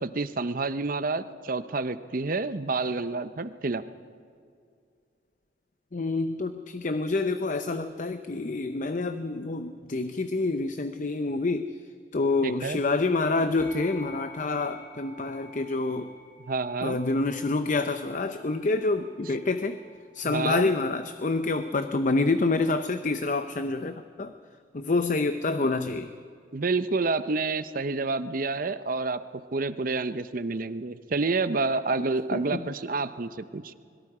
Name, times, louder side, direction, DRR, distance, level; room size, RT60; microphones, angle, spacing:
voice 1, 0.0-3.8 12.4-12.8 16.5-17.0 20.2-20.7 26.5-29.2 29.5-33.7, right 3 dB, 50° right, 12 dB, 0.7 m, -29 dB
voice 2, 5.9-11.7 12.1-16.1 16.8-19.8 20.1-24.3 24.7-26.1 32.3-32.7, left 3 dB, 45° left, 9 dB, 0.7 m, -27 dB
sound 1, 13.6-23.3, equal, 10° left, 3.4 m, -51 dB
25.0 x 22.0 x 5.0 m, 2.3 s
head